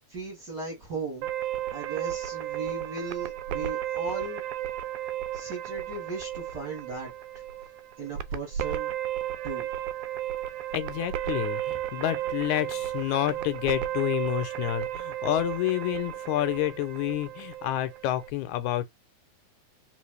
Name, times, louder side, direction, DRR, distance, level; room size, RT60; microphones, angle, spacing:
voice 1, 0.1-1.3 1.7-4.4 5.3-7.1 8.0-8.9 9.4-9.7, right 3 dB, 40° right, 1.9 m, -37 dB
sound 1, 1.2-18.3, right 12 dB, 80° right, 1.9 m, -34 dB
voice 2, 10.7-18.9, left 14 dB, 80° left, 1.9 m, -29 dB
4.3 x 3.3 x 3.2 m
omnidirectional pair, 3.5 m